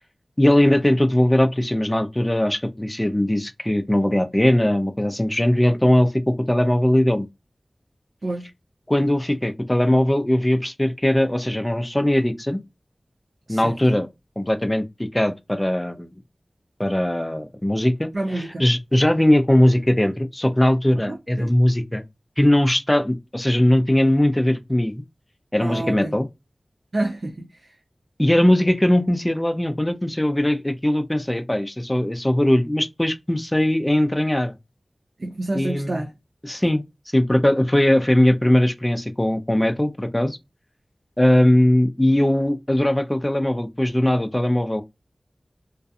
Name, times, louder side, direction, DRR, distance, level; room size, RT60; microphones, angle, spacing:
voice 1, 0.4-7.3 8.9-12.6 13.5-14.1 14.4-16.1 16.8-22.0 22.4-25.0 25.5-26.3 28.2-34.5 35.5-36.0 36.4-36.8 37.1-40.4 41.2-44.8, left 1 dB, 15° left, 0.4 m, -20 dB
voice 2, 13.5-14.0 18.1-18.6 21.1-21.5 25.6-26.1 26.9-27.7 35.2-36.1, right 2 dB, 65° right, 0.4 m, -29 dB
2.4 x 2.2 x 2.6 m
wide cardioid pair, 50°, 0 cm